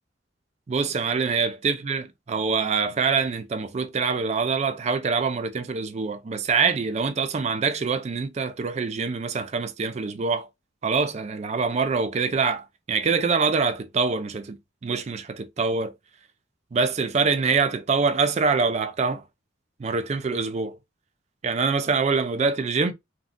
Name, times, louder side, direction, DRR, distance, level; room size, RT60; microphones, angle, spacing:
voice 1, 0.7-10.5 10.8-14.6 14.8-15.9 16.7-19.2 19.8-20.8 21.4-22.9, right 5 dB, 35° right, 0.4 m, -25 dB
3.5 x 2.4 x 2.5 m
head